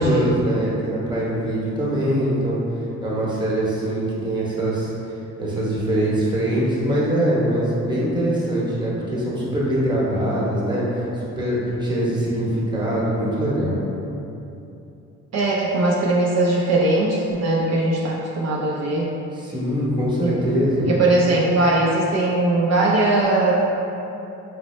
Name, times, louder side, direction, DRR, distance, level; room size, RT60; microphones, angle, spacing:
voice 1, 0.0-2.6 3.0-4.9 5.4-11.0 11.4-13.8 19.4-20.9, right 1 dB, 15° right, -7 dB, 0.9 m, -22 dB
voice 2, 15.3-19.1 20.3-20.4 20.9-23.5, right 2 dB, 60° right, -4 dB, 0.5 m, -20 dB
4.1 x 2.0 x 3.1 m, 2.8 s
cardioid pair, 90°, 30 cm